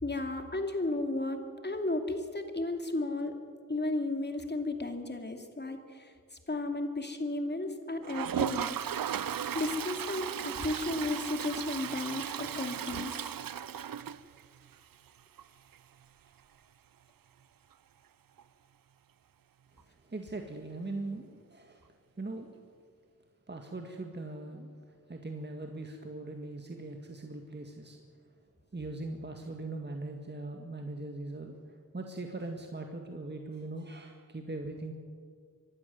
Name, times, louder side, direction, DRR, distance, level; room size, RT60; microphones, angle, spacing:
voice 1, 0.0-3.4 3.7-6.1 6.5-8.8 9.5-13.2, left 2 dB, 30° left, 5 dB, 2.7 m, -34 dB
Toilet flush, 8.0-14.7 15.1-15.2 15.4-15.5 15.7-15.8 18.4-18.5 19.8-19.9, right 9 dB, 80° right, 0.7 m, -36 dB
voice 2, 19.9-22.6 23.5-28.0 28.7-34.9, right 2 dB, 30° right, 3 dB, 1.9 m, -41 dB
23.5 x 12.0 x 9.4 m, 2.1 s
cardioid pair, 50°, 34 cm